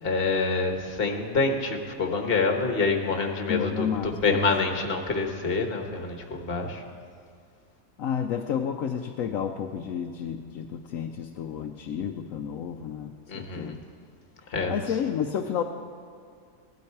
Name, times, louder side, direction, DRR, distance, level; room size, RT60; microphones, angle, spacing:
voice 1, 0.0-6.8 13.3-13.7 14.5-14.8, left 4 dB, 45° left, 4 dB, 1.4 m, -27 dB
voice 2, 3.5-4.4 8.0-13.8 14.7-15.6, left 8 dB, 75° left, 5 dB, 1.0 m, -31 dB
17.0 x 12.0 x 4.6 m, 2.3 s
omnidirectional pair, 1.5 m